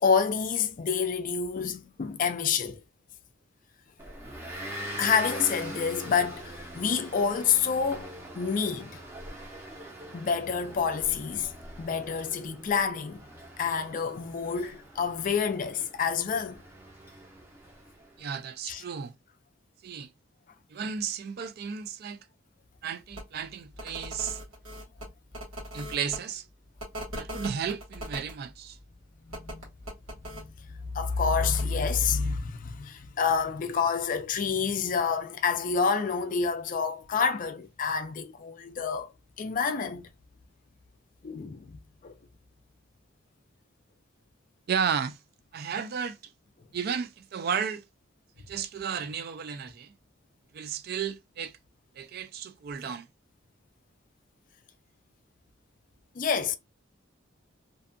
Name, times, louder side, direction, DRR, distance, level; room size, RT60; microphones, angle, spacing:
voice 1, 0.0-2.8 4.9-8.1 8.4-9.0 10.1-11.5 11.8-13.3 13.6-16.6 18.6-18.8 29.3-29.7 30.3-39.1 39.4-40.1 41.2-41.8 42.0-42.1 56.2-56.6, left 6 dB, 40° left, 0.4 m, -28 dB
Motor vehicle (road) / Engine, 4.0-18.2, right 1 dB, 10° right, 0.6 m, -43 dB
voice 2, 18.2-19.1 19.8-20.1 20.7-22.2 22.8-24.4 25.7-26.4 27.2-28.8 44.7-45.2 45.5-46.2 46.7-47.8 48.5-49.9 50.5-51.5 52.0-53.1, right 7 dB, 50° right, 0.3 m, -33 dB
sound 1, 23.1-23.2 23.7-26.2 26.8-28.3 29.3-30.4 31.4-31.6, equal, 85° right, 1.3 m, -39 dB
2.5 x 2.3 x 2.5 m
head